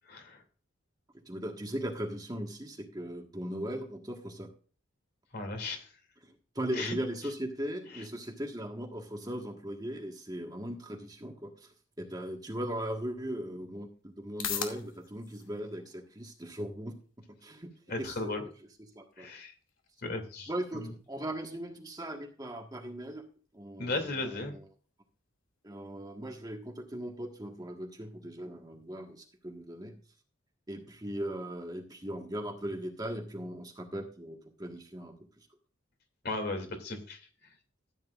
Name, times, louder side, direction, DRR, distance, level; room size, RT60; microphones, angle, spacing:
voice 1, 0.1-0.4 5.3-5.9 6.8-6.9 17.9-18.4 19.2-19.5 20.0-20.5 20.8-20.9 23.8-24.5 36.2-37.2, left 2 dB, 50° left, 4 dB, 2.7 m, -35 dB
voice 2, 1.3-4.5 6.2-17.0 17.3-17.7 18.0-18.3 18.9-19.3 20.5-23.2 23.5-24.7 25.6-30.0 30.7-35.5, right 1 dB, 20° right, 2 dB, 1.6 m, -39 dB
sound 1, 13.5-29.9, left 8 dB, 75° left, 2.4 m, -48 dB
14.5 x 9.4 x 2.5 m, 0.39 s
head